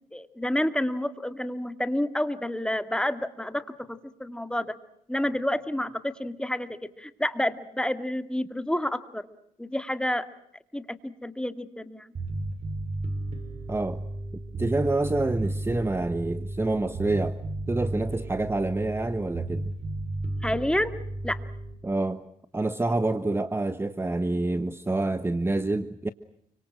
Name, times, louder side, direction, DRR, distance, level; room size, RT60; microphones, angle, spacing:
voice 1, 0.1-4.7 5.1-9.3 9.6-10.3 10.7-12.1 20.4-20.9 21.2-21.4, left 1 dB, 5° left, 2.1 m, -29 dB
Bass guitar, 12.1-21.7, right 2 dB, 50° right, 6.7 m, -33 dB
voice 2, 13.7-14.0 14.5-17.4 17.7-19.7 21.8-22.2 22.5-26.1, right 2 dB, 15° right, 1.3 m, -27 dB
29.5 x 25.5 x 6.3 m
cardioid pair, 80°, 15 cm